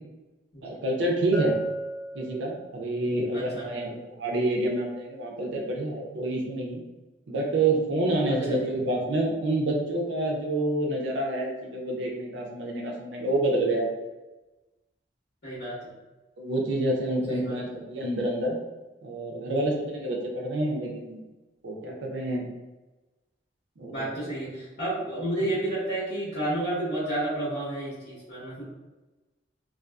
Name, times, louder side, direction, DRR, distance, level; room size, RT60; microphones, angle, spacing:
voice 1, 0.6-1.5 2.1-6.8 7.3-13.9 16.4-18.6 19.0-21.2 21.6-22.5 23.8-24.1, right 1 dB, 90° right, -1 dB, 0.5 m, -28 dB
Bell, 1.3-3.0, right 3 dB, ahead, 0.5 m, -34 dB
voice 2, 3.3-3.7 8.3-8.7 15.4-15.9 17.3-17.6 23.9-28.6, right 1 dB, 80° left, -10 dB, 1.1 m, -31 dB
2.5 x 2.3 x 2.2 m, 1.1 s
head